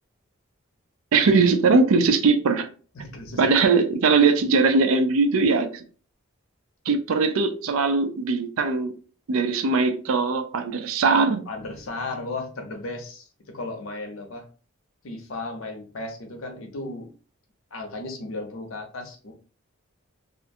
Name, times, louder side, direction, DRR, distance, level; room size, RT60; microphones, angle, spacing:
voice 1, 1.1-2.7 3.4-5.8 6.9-8.9 9.3-11.5, right 4 dB, 80° right, 0.4 m, -20 dB
voice 2, 2.9-3.4 11.5-14.5 15.0-17.1 17.7-19.3, left 2 dB, 75° left, 0.7 m, -35 dB
2.5 x 2.1 x 2.6 m
head